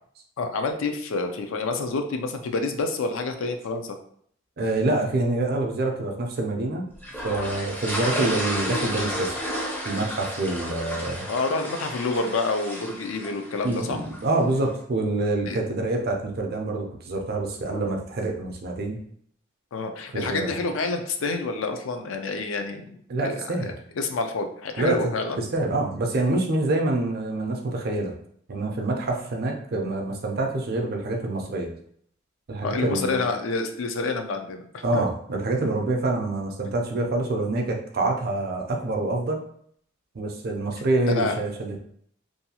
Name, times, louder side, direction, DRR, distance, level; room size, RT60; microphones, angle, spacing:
voice 1, 0.4-4.0 11.3-14.0 15.5-15.6 17.7-17.8 19.7-23.0 23.2-25.5 32.6-35.0 41.1-41.4, left 3 dB, 70° left, 6 dB, 0.4 m, -28 dB
voice 2, 4.6-6.8 7.2-9.3 9.8-11.3 13.6-19.0 20.1-20.6 23.1-23.7 24.8-25.0 25.4-28.1 28.5-31.7 32.5-33.2 34.8-39.4 40.1-41.8, right 2 dB, 50° right, 2 dB, 0.5 m, -26 dB
sound 1, 7.0-14.3, equal, 10° left, 0.5 m, -32 dB
2.6 x 2.3 x 2.8 m, 0.65 s
head